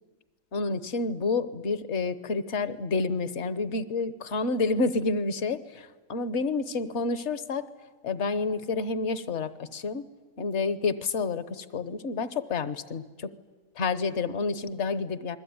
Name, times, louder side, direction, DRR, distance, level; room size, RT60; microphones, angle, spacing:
voice 1, 0.5-7.7 8.0-10.1 10.4-13.3 13.8-15.4, left 4 dB, 55° left, 14 dB, 1.3 m, -29 dB
28.0 x 21.0 x 9.5 m, 1.3 s
omnidirectional pair, 1.5 m